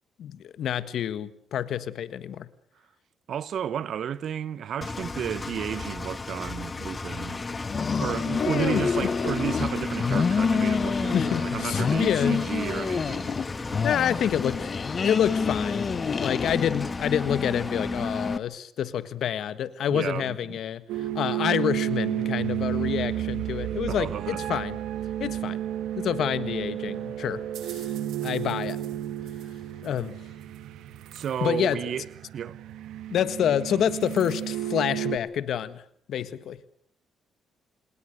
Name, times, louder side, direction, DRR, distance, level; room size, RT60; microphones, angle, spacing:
voice 1, 0.2-2.5 8.4-9.1 11.1-12.4 13.8-14.7 15.0-24.8 25.2-25.6 26.0-27.9 28.2-28.8 29.8-30.2 31.4-31.9 33.1-35.8 36.1-36.6, left 9 dB, 70° left, 1.5 m, -28 dB
voice 2, 3.3-7.4 8.0-13.4 19.9-20.6 23.9-24.4 31.1-32.1 32.3-32.6, right 9 dB, 65° right, 0.9 m, -32 dB
Engine, 4.8-18.4, left 3 dB, 25° left, 1.6 m, -32 dB
sound 1, 7.6-9.7 10.0-11.5 11.7-13.5 13.7-16.9, left 6 dB, 45° left, 1.1 m, -28 dB
sound 2, 20.9-35.2, right 12 dB, 85° right, 1.4 m, -32 dB
27.5 x 20.0 x 6.7 m
cardioid pair, 90°, 0 cm